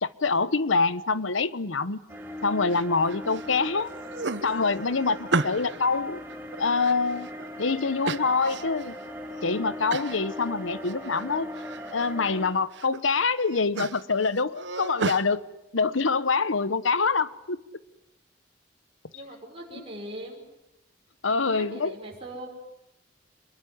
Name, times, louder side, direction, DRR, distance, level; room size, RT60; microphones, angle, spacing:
voice 1, 0.0-2.0 2.4-3.9 4.4-6.2 6.6-7.3 7.6-8.9 9.4-11.5 11.9-15.4 15.7-17.6 21.2-21.9, left 4 dB, 85° left, 1.1 m, -25 dB
sound 1, 2.1-12.5, left 1 dB, 10° right, 4.2 m, -39 dB
sound 2, 2.7-3.5 3.8-5.8 6.3-7.5 8.0-8.9 9.3-9.4 9.9-10.2 10.6-11.3 11.6-12.1 12.5-13.0 13.3-15.2, right 3 dB, 65° right, 1.1 m, -33 dB
voice 2, 19.1-20.5 21.2-22.5, right 1 dB, 30° right, 5.7 m, -40 dB
27.0 x 21.5 x 9.9 m
head